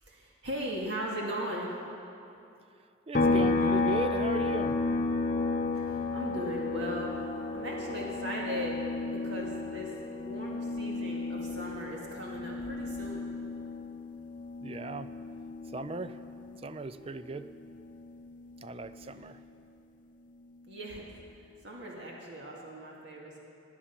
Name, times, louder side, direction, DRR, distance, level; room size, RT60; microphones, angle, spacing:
voice 1, 0.0-1.7 5.7-7.1 7.5-8.8 9.0-13.3 20.7-21.0 21.6-23.4, equal, 60° right, -3 dB, 2.2 m, -38 dB
sound 1, 3.1-16.7 17.0-19.2, left 3 dB, 40° left, 0.7 m, -32 dB
voice 2, 3.1-4.9 14.6-15.1 15.7-17.5 18.6-19.4, right 2 dB, 30° right, 12 dB, 0.4 m, -37 dB
18.0 x 10.0 x 5.9 m, 2.6 s
head